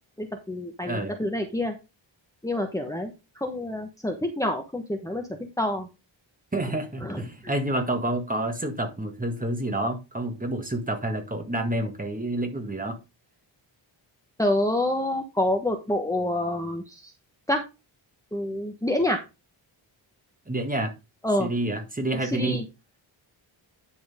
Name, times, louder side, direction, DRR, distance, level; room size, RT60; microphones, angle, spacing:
voice 1, 0.2-1.7 2.4-3.1 3.4-5.2 5.6-5.9 7.0-7.2 14.4-17.0 17.5-17.6 18.3-19.2 21.2-21.5 22.3-22.6, left 1 dB, 5° left, 1.2 m, -27 dB
voice 2, 0.8-1.1 6.5-13.0 20.5-20.9 21.4-22.6, right 1 dB, 15° right, 1.9 m, -28 dB
10.5 x 6.1 x 3.5 m
wide cardioid pair, 145°, 48 cm